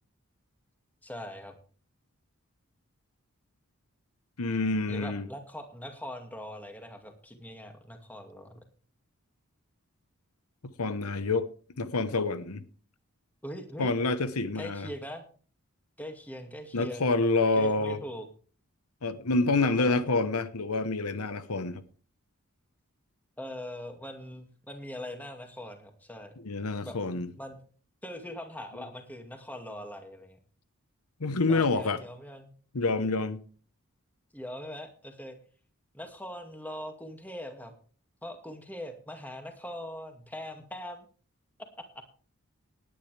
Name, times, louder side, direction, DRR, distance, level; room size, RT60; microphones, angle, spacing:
voice 1, 1.0-1.6 4.9-8.6 13.4-13.9 14.5-15.2 16.0-17.1 17.4-18.3 19.6-20.2 23.4-26.3 26.8-27.0 27.4-27.6 28.0-30.4 31.5-32.5 34.3-35.4 35.9-37.7 38.2-41.1, equal, 5° left, 2.2 m, -41 dB
voice 2, 4.4-5.2 10.8-11.5 11.8-12.6 13.8-14.9 16.7-18.0 19.0-21.8 26.4-27.3 31.2-32.0 32.7-33.4, left 3 dB, 85° left, 1.0 m, -27 dB
19.0 x 9.9 x 3.4 m
head